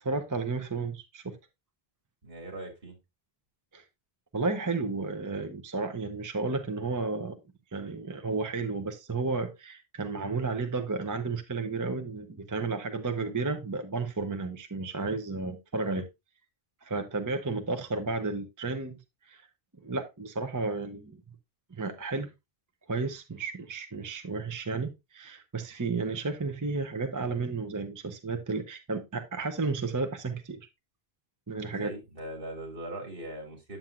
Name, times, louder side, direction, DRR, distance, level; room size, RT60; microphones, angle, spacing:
voice 1, 0.0-1.4 3.7-3.8 4.3-7.3 7.7-16.1 16.8-19.0 19.3-19.4 19.8-21.2 21.7-22.3 22.9-30.7 31.5-31.9, right 3 dB, 20° right, 0.7 m, -32 dB
voice 2, 2.2-3.0 31.7-33.8, right 1 dB, 60° right, 2.6 m, -40 dB
8.9 x 7.5 x 2.5 m
omnidirectional pair, 1.0 m